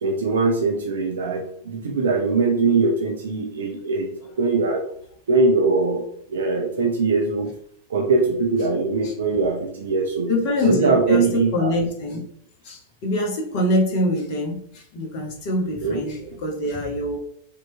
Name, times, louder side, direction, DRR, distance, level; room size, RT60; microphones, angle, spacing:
voice 1, 0.0-4.1 4.4-4.9 5.3-7.5 7.9-10.3 10.6-11.7 15.8-16.0, right 3 dB, 65° right, 1 dB, 0.7 m, -21 dB
voice 2, 10.3-12.2 12.6-17.2, left 1 dB, 45° left, 1 dB, 1.3 m, -24 dB
5.1 x 3.0 x 3.3 m, 0.68 s
figure-of-eight pair, 90°, 0 cm